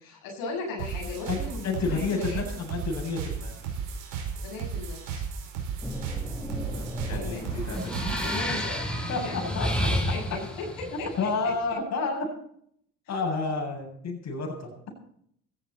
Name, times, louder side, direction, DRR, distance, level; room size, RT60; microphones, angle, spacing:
voice 1, 0.0-2.5 4.4-5.3 7.1-7.5 8.2-8.9 9.2-11.1, left 3 dB, 70° left, -2 dB, 7.6 m, -37 dB
sound 1, 0.8-8.4, right 6 dB, 80° right, 5.4 m, -35 dB
voice 2, 1.6-3.5 6.6-8.0 9.1-9.7 10.9-12.3 13.1-14.7, left 4 dB, 50° left, 1 dB, 7.7 m, -30 dB
sound 2, 5.8-11.5, equal, 5° left, 5.8 m, -31 dB
17.5 x 15.0 x 4.4 m, 0.66 s
supercardioid pair, 75°, 36 cm